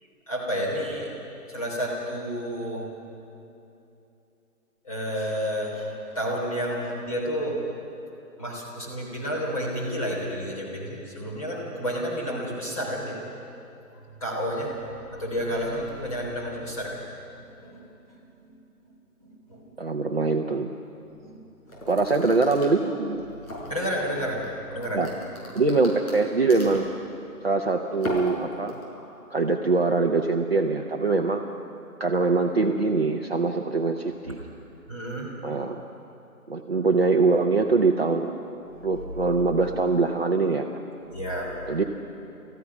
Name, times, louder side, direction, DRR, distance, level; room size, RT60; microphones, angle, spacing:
voice 1, 0.3-1.1 1.5-2.9 4.8-7.6 8.4-13.2 14.2-14.8 15.1-17.0 17.6-17.9 18.4-18.5 18.8-18.9 19.2-19.8 21.2-21.4 21.7-21.8 23.5-24.4 24.7-25.0 34.9-35.3 41.1-41.7, equal, 25° left, -4 dB, 3.4 m, -30 dB
voice 2, 19.8-20.7 21.9-23.3 24.9-25.1 25.5-26.9 27.4-28.8 29.3-31.4 32.0-34.4 35.4-35.8 36.5-38.4 38.8-40.7 41.7-41.8, right 3 dB, 40° right, 2 dB, 0.9 m, -23 dB
sound 1, 21.7-24.0 24.4-27.0 27.9-29.0, equal, 65° left, 6.8 m, -36 dB
28.5 x 15.0 x 5.9 m, 2.8 s
hypercardioid pair, 180°, 45 cm